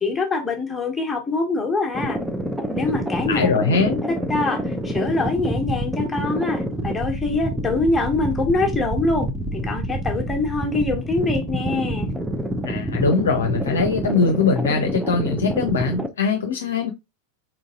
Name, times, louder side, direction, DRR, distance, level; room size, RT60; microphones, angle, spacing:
voice 1, 0.0-2.2 2.7-3.5 3.9-9.3 9.6-12.1, left 3 dB, 10° left, 1.4 m, -24 dB
sound 1, 1.9-16.1, right 1 dB, 5° right, 0.6 m, -27 dB
voice 2, 3.3-4.0 12.6-16.9, left 4 dB, 65° left, 0.7 m, -21 dB
4.4 x 3.9 x 2.5 m
figure-of-eight pair, 90°, 0 cm